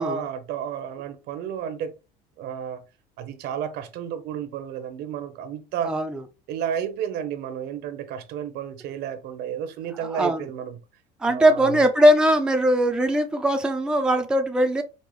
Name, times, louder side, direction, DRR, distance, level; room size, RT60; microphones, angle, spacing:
voice 1, 0.0-1.9 2.4-2.8 3.2-5.9 6.5-10.8 11.3-11.8, right 8 dB, 70° right, 0.7 m, -32 dB
voice 2, 5.8-6.2 10.1-10.4 11.2-14.8, equal, 5° right, 0.4 m, -20 dB
5.3 x 2.1 x 3.1 m
cardioid pair, 140°, 18 cm